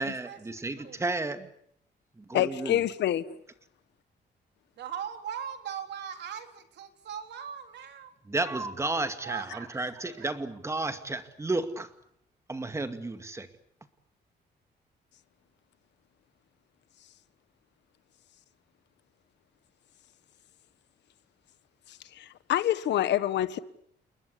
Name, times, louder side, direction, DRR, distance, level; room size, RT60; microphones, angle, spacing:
voice 1, 0.0-1.5 2.1-2.9 8.2-12.0 12.5-13.5, right 2 dB, 15° right, 2.2 m, -32 dB
voice 2, 2.3-3.2 22.1-23.6, left 12 dB, 85° left, 1.5 m, -26 dB
voice 3, 4.8-8.1 9.2-9.7 10.0-10.3, right 8 dB, 80° right, 3.7 m, -39 dB
29.0 x 21.0 x 8.5 m
cardioid pair, 140°, 18 cm